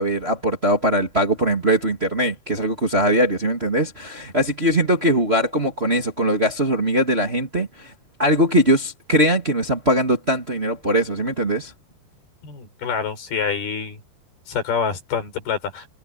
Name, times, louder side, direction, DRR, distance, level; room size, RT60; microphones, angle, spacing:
voice 1, 0.0-7.9 8.2-11.7, equal, 20° right, 2.2 m, -21 dB
voice 2, 12.4-14.0 14.5-15.9, left 6 dB, 75° left, 6.7 m, -26 dB
omnidirectional pair, 4.5 m